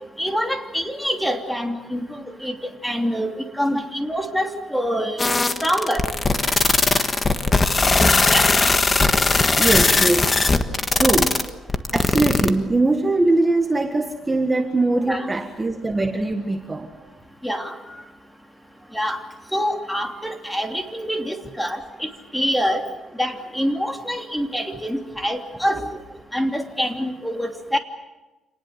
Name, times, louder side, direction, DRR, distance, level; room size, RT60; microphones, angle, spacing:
voice 1, 0.2-2.0 2.4-2.5 2.8-5.3 5.6-6.0 8.3-8.5 15.1-15.3 17.4-17.7 18.9-19.2 19.5-22.8 23.2-25.8 26.3-27.8, equal, 5° left, 4 dB, 2.8 m, -25 dB
sound 1, 5.2-12.5, left 3 dB, 25° left, 1.5 m, -18 dB
voice 2, 9.2-16.9, right 2 dB, 15° right, 4 dB, 1.6 m, -22 dB
27.5 x 19.5 x 8.0 m, 1.1 s
cardioid pair, 115°, 0 cm